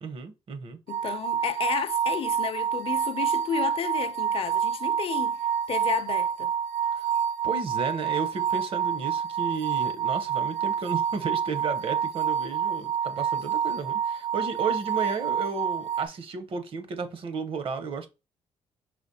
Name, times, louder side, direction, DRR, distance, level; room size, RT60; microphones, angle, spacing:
voice 1, 0.0-0.8 6.9-7.1 7.4-18.1, right 4 dB, 55° right, 0.8 m, -33 dB
voice 2, 0.9-5.4 5.7-6.5, left 9 dB, 55° left, 0.5 m, -32 dB
sound 1, 0.9-16.1, right 8 dB, 90° right, 0.6 m, -28 dB
4.9 x 3.2 x 2.7 m
cardioid pair, 115°, 11 cm